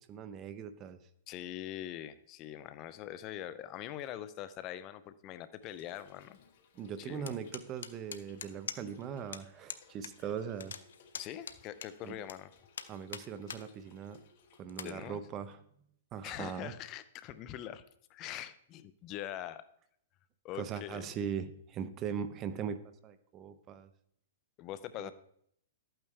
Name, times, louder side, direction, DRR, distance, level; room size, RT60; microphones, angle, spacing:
voice 1, 0.1-1.0 6.7-10.7 12.0-12.2 12.9-14.2 14.6-15.6 16.1-16.7 20.5-22.8 23.0-23.9 25.0-25.1, right 7 dB, 30° right, 12 dB, 0.8 m, -40 dB
voice 2, 1.3-6.4 7.0-7.4 11.1-12.5 14.8-15.2 16.2-17.8 18.1-19.6 20.4-21.1 24.6-25.1, left 12 dB, 35° left, 14 dB, 0.5 m, -43 dB
Trickle dribble / Fill (with liquid), 5.6-14.6, left 5 dB, 55° left, 1.5 m, -63 dB
sound 1, 7.3-9.0 9.3-9.4 9.7-10.1 10.4-12.3 12.7-13.6 14.1-14.2 14.7-14.9, left 7 dB, 85° left, 0.8 m, -43 dB
12.0 x 8.9 x 3.3 m, 0.69 s
hypercardioid pair, 140°, 0 cm